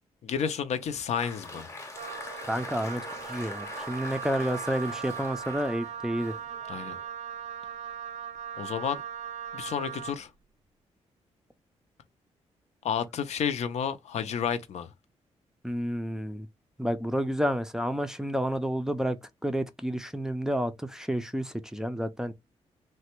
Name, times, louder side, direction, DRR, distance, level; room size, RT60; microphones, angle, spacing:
voice 1, 0.2-1.7 6.7-7.0 8.6-9.0 9.5-10.3 12.8-14.9, left 7 dB, 70° left, 0.5 m, -31 dB
Applause, 0.7-7.1, left 2 dB, 25° left, 0.8 m, -43 dB
Wind instrument woodwind instrument, 1.9-10.2, right 8 dB, 70° right, 0.4 m, -39 dB
voice 2, 2.5-3.0 3.3-6.3 15.6-16.5 16.8-19.2 19.4-22.3, equal, 5° right, 0.4 m, -30 dB
3.2 x 2.1 x 2.9 m
cardioid pair, 120°, 12 cm